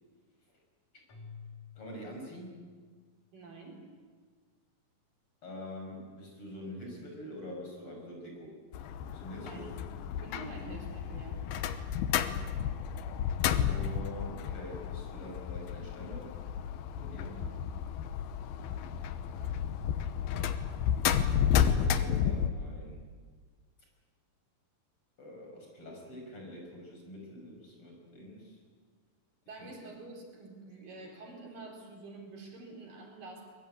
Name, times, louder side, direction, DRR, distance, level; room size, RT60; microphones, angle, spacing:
Keyboard (musical), 1.1-3.3, left 6 dB, 50° left, 4.1 m, -51 dB
voice 1, 1.8-2.6 5.4-8.5 9.1-9.7 13.6-16.4 16.9-17.4 21.0-23.0 25.2-28.6 29.6-29.7, left 1 dB, 35° left, 0 dB, 6.9 m, -45 dB
voice 2, 3.3-3.8 9.4-9.7 10.1-11.4 17.2-17.8 18.6-18.9 29.5-33.4, right 3 dB, 65° right, 0 dB, 6.0 m, -47 dB
sound 1, 8.7-22.5, left 8 dB, 80° left, 3.0 m, -32 dB
23.5 x 22.5 x 8.9 m, 1.5 s
omnidirectional pair, 4.3 m